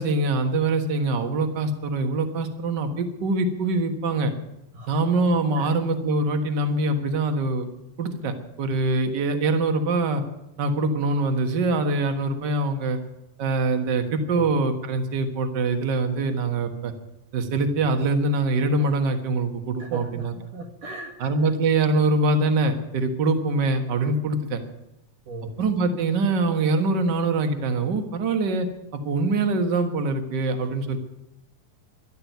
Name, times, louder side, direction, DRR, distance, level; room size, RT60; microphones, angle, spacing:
voice 1, 0.0-4.3 4.9-7.7 8.0-10.2 10.6-13.0 13.4-16.9 17.3-20.3 21.2-24.6 25.6-28.7 28.9-31.0, right 3 dB, 50° right, 6 dB, 1.2 m, -24 dB
voice 2, 19.8-21.5 25.3-25.6, right 2 dB, 70° right, 1 dB, 3.2 m, -37 dB
12.5 x 12.0 x 9.3 m, 0.86 s
omnidirectional pair, 4.1 m